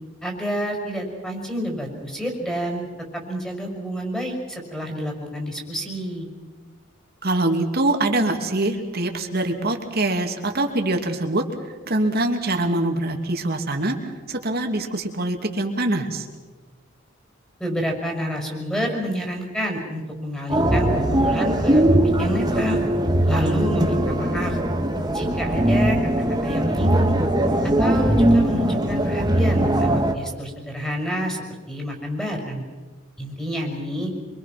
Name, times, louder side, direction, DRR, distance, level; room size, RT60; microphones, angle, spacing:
voice 1, 0.2-2.9 3.1-6.3 17.6-21.8 22.2-22.8 23.3-24.6 25.1-26.1 26.4-27.2 27.8-32.6 33.2-34.1, equal, 5° left, 1 dB, 5.8 m, -28 dB
voice 2, 7.2-11.4 11.9-16.3, right 2 dB, 55° right, 4 dB, 2.9 m, -24 dB
sound 1, 20.5-30.1, right 1 dB, 20° right, 2.1 m, -20 dB
26.0 x 24.5 x 6.1 m, 1.4 s
head